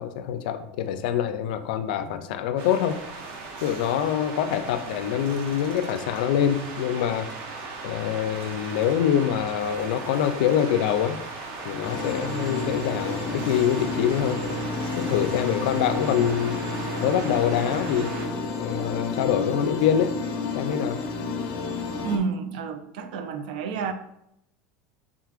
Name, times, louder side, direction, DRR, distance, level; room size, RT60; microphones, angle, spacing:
voice 1, 0.0-3.0 3.6-7.3 7.8-11.2 11.6-14.4 15.0-16.6 17.0-18.1 18.6-20.1 20.5-21.0, left 9 dB, 75° left, 0.4 m, -25 dB
sound 1, 2.6-18.3, right 3 dB, 50° right, 0.6 m, -38 dB
sound 2, 11.8-22.2, left 3 dB, 50° left, 0.7 m, -30 dB
voice 2, 22.0-23.9, right 5 dB, 85° right, 0.5 m, -30 dB
4.7 x 3.7 x 2.4 m
cardioid pair, 175°, 5 cm